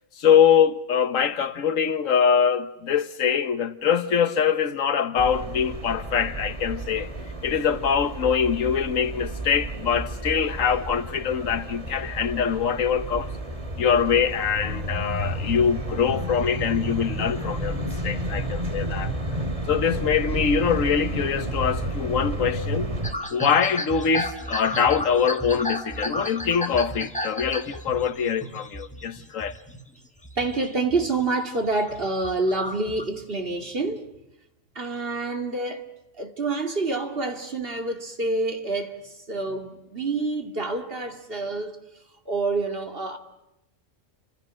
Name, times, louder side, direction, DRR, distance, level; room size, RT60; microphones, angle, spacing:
voice 1, 0.2-7.1 7.4-13.3 13.8-19.1 19.7-22.9 23.3-29.6, left 7 dB, 90° left, 1.5 m, -23 dB
sound 1, 5.2-23.1, right 1 dB, 25° right, 2.5 m, -31 dB
sound 2, 23.0-29.8 30.2-31.2 31.6-33.0, equal, 5° left, 1.9 m, -34 dB
voice 2, 30.4-34.1 34.7-35.9 36.2-41.8 42.3-43.2, right 3 dB, 45° right, 2.6 m, -27 dB
30.0 x 26.0 x 6.4 m
omnidirectional pair, 1.3 m